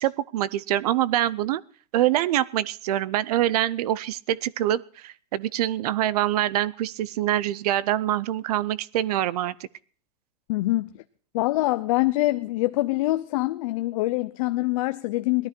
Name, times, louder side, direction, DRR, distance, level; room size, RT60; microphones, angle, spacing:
voice 1, 0.0-1.6 1.9-9.5, right 13 dB, 70° right, 0.6 m, -25 dB
voice 2, 10.5-10.9 11.3-15.5, left 19 dB, 55° left, 0.7 m, -24 dB
18.5 x 13.0 x 4.4 m
supercardioid pair, 155°, 20 cm